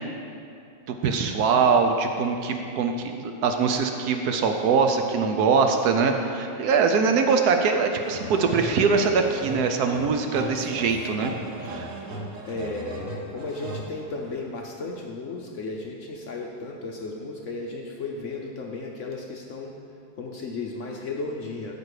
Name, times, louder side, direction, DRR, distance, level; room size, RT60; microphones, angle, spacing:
voice 1, 0.9-11.3 11.6-11.9, right 5 dB, 65° right, 5 dB, 1.0 m, -23 dB
sound 1, 8.0-14.6, right 1 dB, 50° right, 1.2 m, -37 dB
voice 2, 12.5-19.7 20.2-21.7, left 3 dB, 65° left, 0 dB, 0.7 m, -34 dB
13.0 x 5.2 x 4.8 m, 2.5 s
omnidirectional pair, 2.0 m